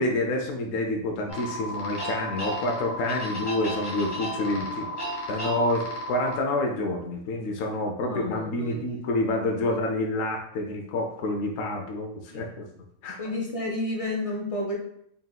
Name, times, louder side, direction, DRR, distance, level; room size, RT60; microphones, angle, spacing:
voice 1, 0.0-4.9 5.3-12.7 13.0-13.2, left 2 dB, 85° left, 2 dB, 1.0 m, -28 dB
sound 1, 1.3-6.4, equal, 20° left, 0.9 m, -33 dB
voice 2, 4.4-5.0 8.0-8.8 12.3-12.5 13.2-14.8, left 1 dB, 40° left, -1 dB, 0.5 m, -32 dB
4.1 x 3.9 x 2.2 m, 0.70 s
omnidirectional pair, 1.3 m